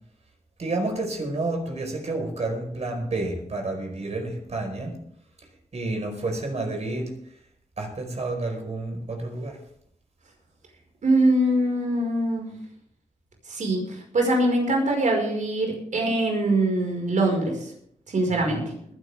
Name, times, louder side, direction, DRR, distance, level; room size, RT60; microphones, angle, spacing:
voice 1, 0.6-5.0 5.7-7.2 7.8-9.6 18.5-18.7, right 2 dB, 60° right, 2 dB, 4.8 m, -30 dB
voice 2, 11.0-12.5 13.5-17.5 18.1-18.6, right 1 dB, 75° right, 1 dB, 5.4 m, -23 dB
21.0 x 11.0 x 3.6 m, 0.65 s
wide cardioid pair, 80°, 13 cm